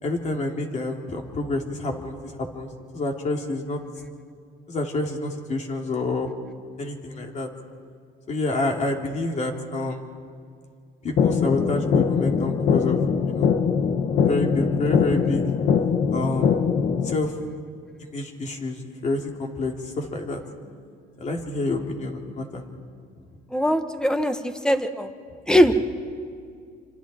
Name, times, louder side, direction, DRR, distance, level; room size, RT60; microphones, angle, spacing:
voice 1, 0.0-3.8 4.7-6.3 6.8-7.5 8.3-10.0 11.0-13.5 14.3-15.5 16.1-16.5 17.0-17.4 18.0-20.4 21.2-22.6, left 2 dB, 45° left, 2 dB, 3.0 m, -28 dB
sound 1, 11.2-17.2, left 6 dB, 60° left, 1.4 m, -22 dB
voice 2, 23.5-25.1 25.5-25.8, equal, 5° left, 8 dB, 1.3 m, -21 dB
27.5 x 26.0 x 4.4 m, 2.2 s
cardioid pair, 110°, 17 cm